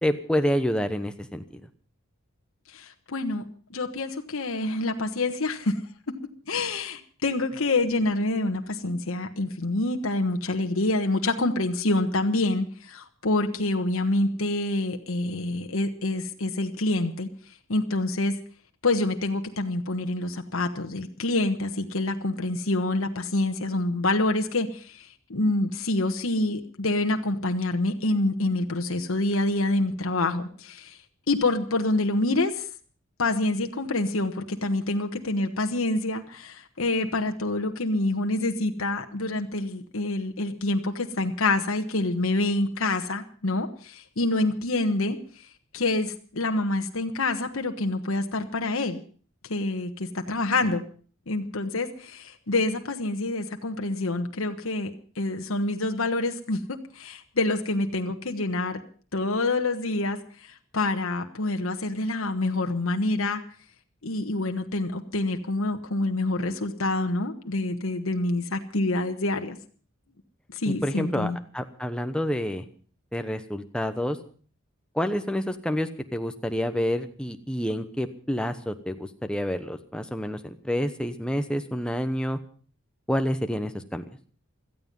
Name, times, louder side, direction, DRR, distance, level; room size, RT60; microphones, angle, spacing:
voice 1, 0.0-1.6 70.7-72.6 73.1-74.2 74.9-82.4 83.1-84.1, equal, 5° left, 8 dB, 1.0 m, -28 dB
voice 2, 2.7-3.4 3.7-5.8 6.1-6.2 6.5-17.3 17.7-18.3 18.8-31.0 31.3-32.7 33.2-45.2 45.7-49.0 49.5-50.8 51.3-54.9 55.2-58.8 59.1-60.2 60.7-63.4 64.0-69.6 70.5-71.4, left 2 dB, 75° left, 5 dB, 1.3 m, -27 dB
17.0 x 14.0 x 5.4 m, 0.42 s
head